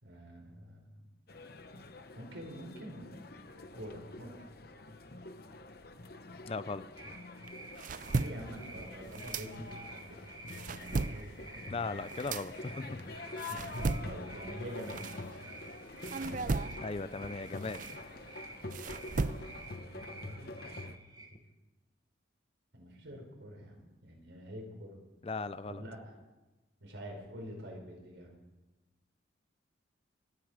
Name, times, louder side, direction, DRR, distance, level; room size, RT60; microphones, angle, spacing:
voice 1, 0.0-1.0 2.2-3.3 3.7-4.4 8.2-10.3 10.7-11.4 13.5-15.0 19.0-20.5 21.2-21.3 22.7-25.0 25.7-26.2 26.8-28.3, equal, 80° right, 0 dB, 4.8 m, -46 dB
sound 1, 1.3-21.0, left 2 dB, 50° left, 0.9 m, -46 dB
voice 2, 6.5-7.2 11.7-13.4 16.8-17.8 25.2-25.8, left 3 dB, 30° left, 14 dB, 0.4 m, -38 dB
sound 2, 7.0-21.3, right 3 dB, 20° right, 1.6 m, -51 dB
sound 3, 7.4-10.0 10.3-15.6 16.0-19.8, right 3 dB, 40° right, 0.4 m, -37 dB
28.0 x 9.4 x 5.0 m, 1.1 s
head